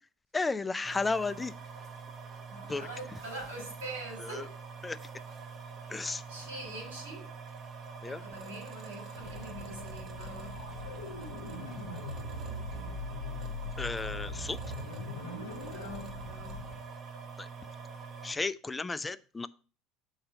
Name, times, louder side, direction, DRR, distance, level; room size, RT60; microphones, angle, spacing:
voice 1, 0.3-1.6 2.7-2.9 4.2-4.5 4.8-5.0 5.9-6.2 8.0-8.2 13.8-14.6 17.4-17.5 18.2-19.5, left 3 dB, 20° left, 14 dB, 0.3 m, -33 dB
sound 1, 0.8-18.3, right 5 dB, 40° right, 0.8 m, -45 dB
voice 2, 2.5-4.6 6.3-7.2 8.0-10.5 15.7-16.6, right 1 dB, 80° right, 3 dB, 2.7 m, -44 dB
sound 2, 9.2-16.8, left 2 dB, 90° left, 0.7 m, -41 dB
6.7 x 3.9 x 5.4 m, 0.37 s
hypercardioid pair, 70°, 0 cm